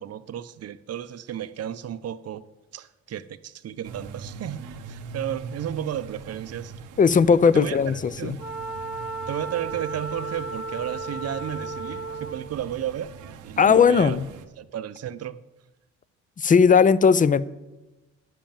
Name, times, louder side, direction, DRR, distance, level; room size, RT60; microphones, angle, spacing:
voice 1, 0.0-2.5 2.7-6.7 7.5-7.8 8.2-8.4 9.3-13.1 13.4-14.2 14.6-15.4, right 10 dB, 55° right, 0.6 m, -33 dB
sound 1, 3.8-14.5, right 5 dB, 85° right, 0.9 m, -42 dB
voice 2, 7.0-8.4 13.6-14.2 16.4-17.4, left 6 dB, 25° left, 0.5 m, -17 dB
Wind instrument woodwind instrument, 8.4-12.5, right 3 dB, 65° left, 2.8 m, -34 dB
10.5 x 7.5 x 7.3 m
cardioid pair, 90°, 30 cm